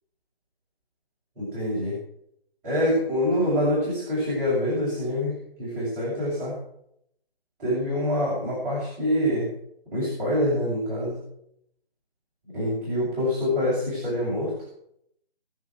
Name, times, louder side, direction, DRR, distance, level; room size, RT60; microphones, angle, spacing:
voice 1, 1.4-2.0 2.6-6.6 7.6-9.5 9.9-11.2 12.5-14.5, left 1 dB, 15° right, -9 dB, 7.3 m, -25 dB
22.0 x 7.5 x 7.7 m, 0.73 s
figure-of-eight pair, 160°, 30 cm